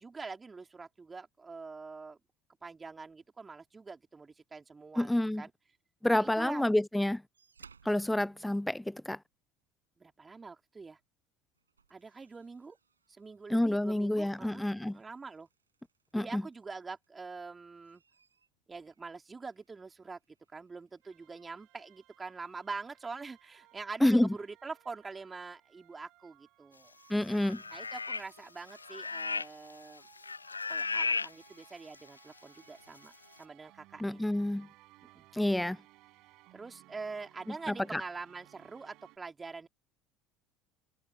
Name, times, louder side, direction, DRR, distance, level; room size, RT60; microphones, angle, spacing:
voice 1, 0.0-2.2 2.6-5.1 5.4-5.5 6.1-6.7 10.0-11.0 11.9-12.8 13.1-15.5 16.1-18.0 18.7-20.2 20.5-26.9 27.7-30.1 30.7-33.1 33.4-34.2 35.0-35.3 36.5-39.7, right 4 dB, 20° right, 3.8 m, -45 dB
voice 2, 5.0-5.4 6.0-7.2 7.9-9.2 13.5-15.0 16.1-16.4 24.0-24.3 27.1-27.6 34.0-34.7 35.3-35.8 37.7-38.0, left 1 dB, 5° left, 0.6 m, -28 dB
sound 1, 7.3-9.4 10.9-11.1 11.5-17.2 17.6-21.8 22.7-22.8, right 5 dB, 85° right, 6.7 m, -65 dB
sound 2, 21.0-39.2, right 20 dB, 60° right, 5.4 m, -62 dB
sound 3, 27.3-28.4 28.6-29.7 30.0-31.3 31.9-32.0, left 4 dB, 90° left, 0.5 m, -35 dB
figure-of-eight pair, 65°, 0 cm